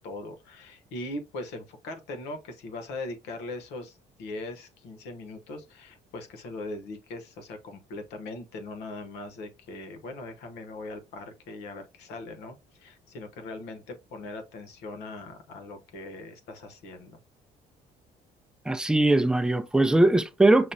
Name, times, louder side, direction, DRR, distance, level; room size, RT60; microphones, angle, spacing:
voice 1, 0.0-17.2, left 2 dB, 90° left, 0.9 m, -40 dB
voice 2, 18.7-20.7, right 2 dB, 5° right, 0.4 m, -21 dB
6.0 x 2.0 x 2.7 m
cardioid pair, 110°, 17 cm